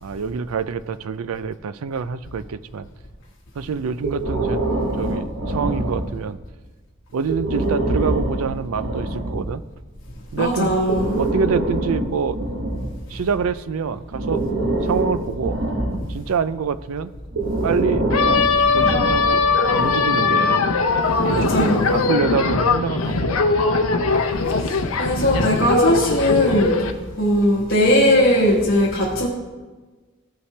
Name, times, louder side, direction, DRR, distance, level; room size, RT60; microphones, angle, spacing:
voice 1, 0.0-2.9 3.6-4.6 5.0-6.4 7.1-9.6 10.3-10.7 11.2-12.4 13.1-14.4 14.8-15.6 16.1-17.1 17.6-18.0 18.6-19.4 19.8-20.6 21.2-23.5, right 6 dB, 85° right, 15 dB, 0.4 m, -26 dB
Breathing, 4.0-6.4 7.2-9.6 10.7-13.5 14.1-16.3 17.3-19.6, right 2 dB, 65° right, 1.2 m, -25 dB
voice 2, 10.4-11.2 21.3-21.9 24.5-26.8 27.2-29.3, left 1 dB, 60° left, -6 dB, 1.5 m, -19 dB
sound 1, 18.1-26.9, left 4 dB, 80° left, 0.7 m, -20 dB
16.0 x 5.6 x 3.3 m, 1.3 s
head